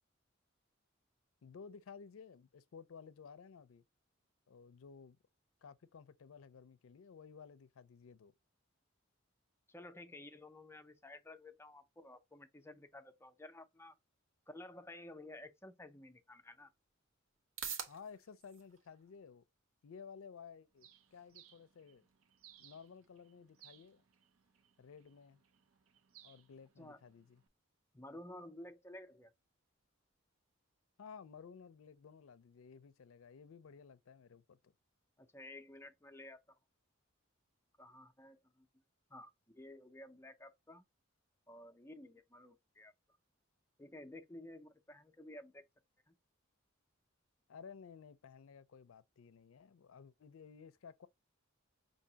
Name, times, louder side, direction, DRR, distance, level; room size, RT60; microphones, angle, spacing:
voice 1, 1.4-3.8 4.5-5.2 5.6-8.3 17.9-19.4 19.8-22.0 22.6-24.0 24.8-25.4 26.2-27.4 31.0-34.7 47.5-51.1, left 6 dB, 85° left, 0.4 m, -55 dB
voice 2, 9.7-14.0 14.5-16.7 26.8-27.0 27.9-29.3 35.2-36.4 37.8-38.7 39.1-40.8 41.5-42.9 43.8-45.6 46.1-46.2, left 1 dB, 10° left, 0.5 m, -53 dB
sound 1, 16.7-33.1, right 7 dB, 70° right, 0.9 m, -56 dB
Bird, 20.8-27.5, right 11 dB, 85° right, 0.5 m, -65 dB
5.5 x 2.7 x 2.8 m
head